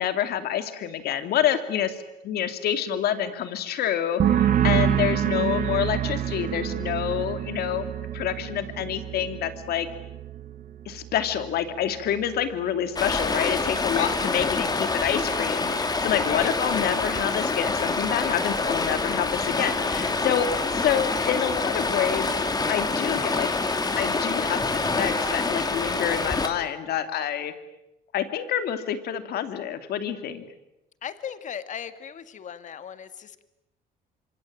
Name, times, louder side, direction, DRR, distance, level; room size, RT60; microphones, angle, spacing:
voice 1, 0.0-7.9 8.1-9.9 10.8-22.3 22.7-23.5 24.0-27.5 28.1-30.5, left 9 dB, 70° left, 9 dB, 2.8 m, -27 dB
sound 1, 4.2-11.7 11.9-12.5, right 10 dB, 55° right, 1.9 m, -27 dB
Stream, 13.0-26.5, left 3 dB, 25° left, 2.9 m, -26 dB
voice 2, 13.9-14.5 16.2-16.5 31.0-33.4, left 8 dB, 45° left, 11 dB, 1.9 m, -37 dB
26.5 x 25.0 x 9.0 m, 0.90 s
cardioid pair, 110°, 17 cm